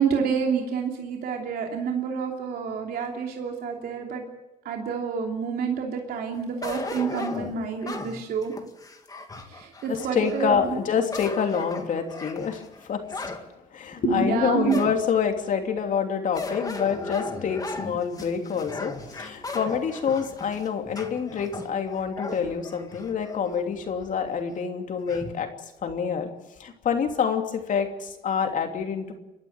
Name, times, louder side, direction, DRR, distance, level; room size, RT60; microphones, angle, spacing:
voice 1, 0.0-4.2 4.6-8.5 9.5-10.8 14.0-14.8, right 6 dB, 65° right, 1 dB, 3.1 m, -28 dB
sound 1, 6.6-10.4 10.9-13.4 13.9-14.0 14.7-15.3 16.3-23.4 23.8-23.9 25.1-25.4, left 3 dB, 20° left, 2.4 m, -36 dB
voice 2, 9.9-13.0 13.7-25.5 25.8-26.3 26.6-29.1, left 6 dB, 50° left, 4 dB, 3.0 m, -27 dB
29.5 x 12.0 x 9.0 m, 0.98 s
cardioid pair, 110°, 17 cm